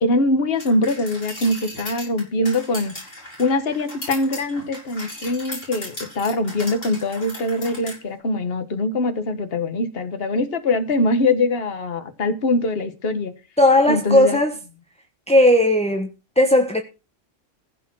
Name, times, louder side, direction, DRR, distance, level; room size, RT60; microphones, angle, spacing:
voice 1, 0.0-2.9 3.4-13.3 13.9-14.4, left 2 dB, 50° left, 1.6 m, -23 dB
sound 1, 0.6-8.0, left 1 dB, 75° left, 7.2 m, -37 dB
voice 2, 13.6-14.6 15.3-16.1 16.4-16.8, left 1 dB, 5° left, 1.1 m, -16 dB
15.5 x 6.9 x 6.2 m
omnidirectional pair, 1.3 m